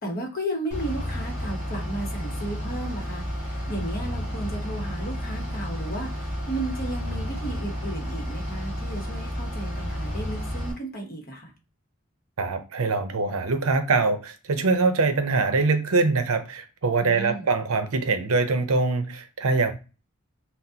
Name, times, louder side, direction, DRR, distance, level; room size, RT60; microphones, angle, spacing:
voice 1, 0.0-11.5 17.0-17.5, right 1 dB, 40° left, 1.0 m, -34 dB
Bus / Idling, 0.7-10.7, equal, 5° right, 1.9 m, -31 dB
voice 2, 12.4-19.7, right 3 dB, 70° right, 0.6 m, -23 dB
5.8 x 2.0 x 2.8 m
head